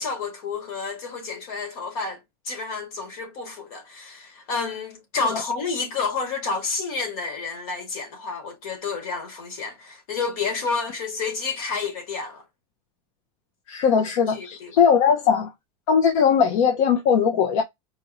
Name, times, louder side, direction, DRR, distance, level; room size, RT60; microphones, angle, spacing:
voice 1, 0.0-12.4 13.9-14.7, left 4 dB, 80° left, 2.1 m, -30 dB
voice 2, 13.7-15.5 15.9-17.6, left 7 dB, 60° left, 0.7 m, -19 dB
4.4 x 2.5 x 2.9 m
supercardioid pair, 180°, 18 cm